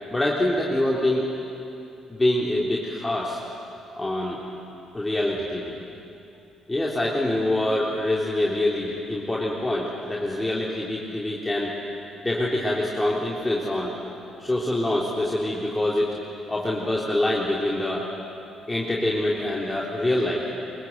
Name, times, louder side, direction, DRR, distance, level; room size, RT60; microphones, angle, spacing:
voice 1, 0.1-1.3 2.1-3.4 4.0-4.4 4.9-5.8 6.7-11.7 12.2-13.9 14.4-16.1 16.5-18.1 18.7-20.4, left 1 dB, 15° left, -4 dB, 3.5 m, -25 dB
24.0 x 23.0 x 8.0 m, 2.7 s
figure-of-eight pair, 45°, 0 cm